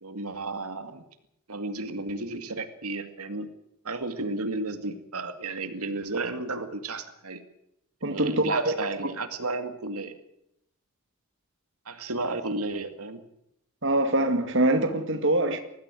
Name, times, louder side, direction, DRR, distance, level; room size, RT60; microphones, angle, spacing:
voice 1, 0.0-1.0 1.5-3.5 3.8-7.4 8.1-10.1 11.9-13.2, right 2 dB, 90° right, 2.3 m, -33 dB
voice 2, 8.0-8.7 9.0-9.1 13.8-15.6, right 2 dB, 55° right, 2.1 m, -24 dB
20.5 x 15.0 x 9.2 m
head